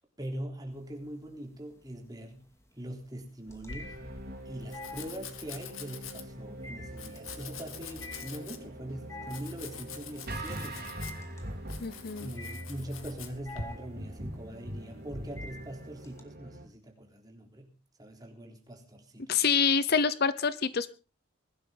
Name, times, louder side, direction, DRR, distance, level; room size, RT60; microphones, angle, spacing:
voice 1, 0.2-2.5 2.8-4.0 4.5-10.9 12.2-17.7 18.0-19.5, right 1 dB, 20° right, 2 dB, 3.6 m, -42 dB
sound 1, 0.7-1.4 1.7-16.2, left 2 dB, 15° left, 2.5 m, -48 dB
Domestic sounds home sounds, 3.5-13.6, left 6 dB, 85° left, 2.2 m, -46 dB
sound 2, 3.8-16.6, right 1 dB, 50° right, 4.3 m, -43 dB
voice 2, 11.8-12.3 19.3-20.9, left 6 dB, 50° left, 15 dB, 0.7 m, -26 dB
21.0 x 12.0 x 3.9 m, 0.34 s
head